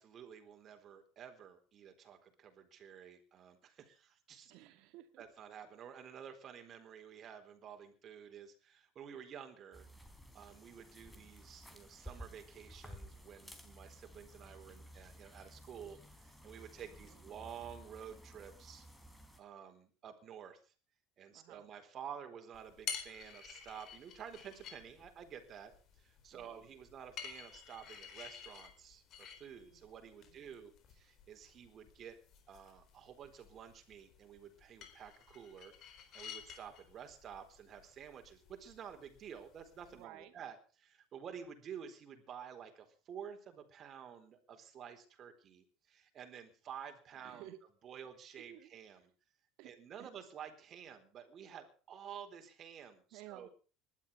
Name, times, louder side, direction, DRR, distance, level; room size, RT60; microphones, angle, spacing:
voice 1, 0.0-4.5 5.2-9.9 10.3-18.9 19.4-20.7 21.2-32.2 32.5-47.5 47.8-49.1 49.6-53.5, right 8 dB, 35° right, 6 dB, 4.1 m, -51 dB
voice 2, 4.5-5.2 16.9-17.3 21.3-21.7 26.3-26.7 29.7-29.8 30.2-30.6 39.9-40.4 47.2-47.6 48.5-49.0 49.6-49.7 50.0-50.1 53.1-53.5, right 14 dB, 65° right, 9 dB, 2.4 m, -55 dB
sound 1, 9.7-19.4, equal, 5° left, 3.6 m, -55 dB
sound 2, 22.5-40.0, left 7 dB, 45° left, 4.3 m, -52 dB
19.5 x 12.5 x 5.5 m, 0.38 s
supercardioid pair, 130°, 0 cm